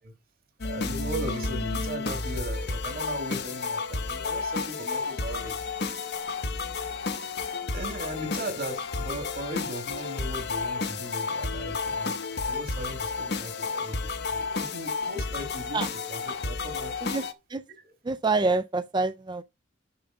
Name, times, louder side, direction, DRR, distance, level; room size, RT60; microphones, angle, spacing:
sound 1, 0.6-17.3, left 4 dB, 55° left, 0.9 m, -31 dB
voice 1, 0.6-5.6 7.7-12.1 12.4-17.0 17.8-17.9, right 1 dB, 50° right, 1.9 m, -38 dB
voice 2, 18.0-19.4, right 3 dB, 20° right, 0.4 m, -26 dB
6.9 x 6.8 x 5.0 m
head